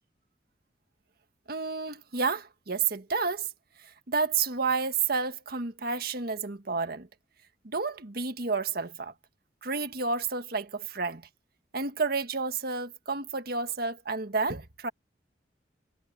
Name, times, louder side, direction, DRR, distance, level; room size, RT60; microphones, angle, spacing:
voice 1, 1.5-3.5 4.1-7.1 7.6-9.1 9.6-11.2 11.7-14.9, right 4 dB, 60° right, 1.6 m, -30 dB
head